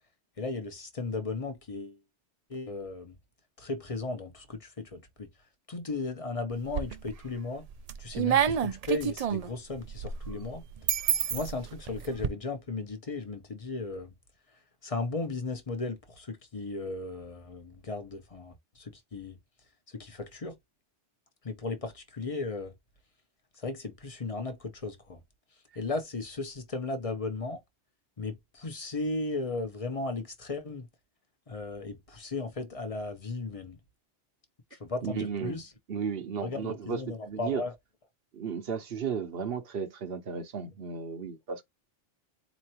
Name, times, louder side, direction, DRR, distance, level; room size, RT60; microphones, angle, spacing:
voice 1, 0.4-2.0 2.5-3.1 3.6-5.3 5.7-7.6 8.0-10.6 11.3-14.1 14.8-19.4 19.9-20.6 21.4-22.7 23.6-25.2 25.7-27.6 28.2-30.9 31.5-33.8 34.7-35.7 36.4-37.7, left 3 dB, 35° left, 0.9 m, -36 dB
sound 1, 6.5-7.2 7.6-12.3, right 9 dB, 85° right, 0.3 m, -29 dB
voice 2, 35.0-35.6 35.9-37.6 38.3-41.6, right 6 dB, 60° right, 1.0 m, -34 dB
4.3 x 3.0 x 2.8 m
omnidirectional pair, 1.2 m